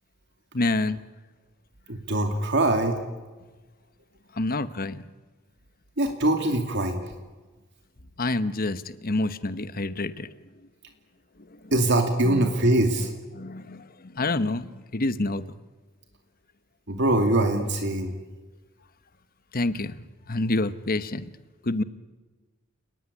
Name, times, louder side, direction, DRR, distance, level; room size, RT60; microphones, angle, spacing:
voice 1, 0.5-1.0 4.3-5.0 8.2-10.3 11.4-11.7 12.2-12.6 13.0-13.1 13.3-15.4 19.5-21.3 21.6-21.8, left 2 dB, 45° left, 13 dB, 1.1 m, -28 dB
voice 2, 1.9-3.0 6.0-7.0 11.7-13.1 16.9-18.1, right 1 dB, 55° right, 5 dB, 2.6 m, -23 dB
30.0 x 20.0 x 9.8 m, 1.3 s
head